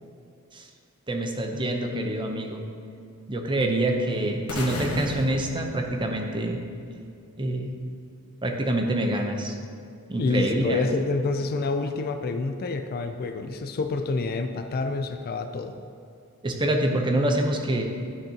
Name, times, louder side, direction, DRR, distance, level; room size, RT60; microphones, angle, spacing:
voice 1, 1.1-2.6 3.3-6.6 7.4-7.7 8.4-9.5 10.1-10.9 16.4-17.8, right 1 dB, 20° right, 2 dB, 0.7 m, -26 dB
sound 1, 4.5-6.6, left 2 dB, 80° left, 1.2 m, -34 dB
voice 2, 10.2-15.8, left 3 dB, 45° left, 7 dB, 0.4 m, -28 dB
10.5 x 6.5 x 2.8 m, 2.5 s
head